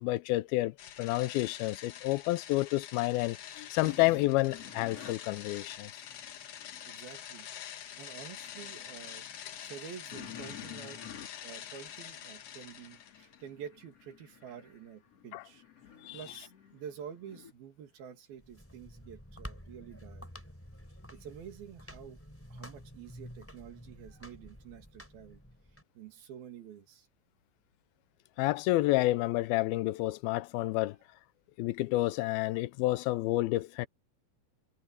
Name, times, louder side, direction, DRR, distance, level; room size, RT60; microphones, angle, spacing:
voice 1, 0.0-5.9 15.3-15.4 16.0-16.2 28.4-31.0 31.6-33.9, left 18 dB, 90° left, 2.5 m, -29 dB
sound 1, 0.8-13.4, left 10 dB, 70° left, 1.3 m, -46 dB
sound 2, 3.8-7.1 7.5-17.5, left 8 dB, 45° left, 4.1 m, -52 dB
voice 2, 6.9-7.5 8.0-9.3 9.6-11.0 11.4-15.6 16.1-20.3 21.1-22.2 22.5-25.4 26.0-27.1, right 8 dB, 80° right, 4.2 m, -48 dB
sound 3, 18.4-25.8, equal, 5° left, 5.4 m, -50 dB
omnidirectional pair, 4.3 m